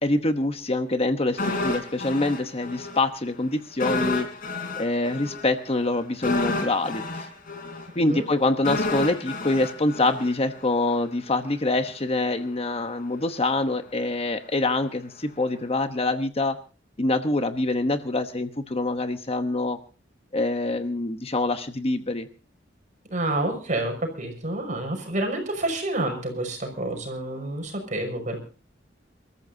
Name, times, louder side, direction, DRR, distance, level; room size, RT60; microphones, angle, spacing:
voice 1, 0.0-4.3 4.8-7.2 7.9-16.6 17.0-19.8 20.3-22.3, left 2 dB, 35° left, 8 dB, 1.0 m, -25 dB
sound 1, 1.4-3.0 3.3-3.4 3.8-10.9 11.2-11.3, left 3 dB, 50° left, 3.8 m, -30 dB
voice 2, 23.1-28.4, right 1 dB, 45° right, 4 dB, 5.7 m, -28 dB
28.5 x 14.0 x 2.7 m, 0.37 s
head